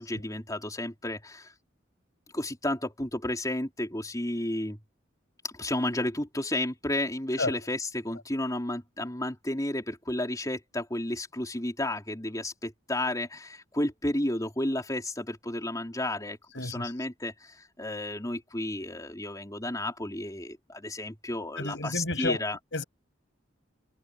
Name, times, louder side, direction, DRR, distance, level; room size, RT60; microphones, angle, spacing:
voice 1, 0.0-1.5 2.3-4.8 5.4-22.6, left 1 dB, 20° left, 4.3 m, -32 dB
voice 2, 16.5-16.9 21.6-22.4 22.7-22.8, left 2 dB, 65° left, 7.9 m, -31 dB
head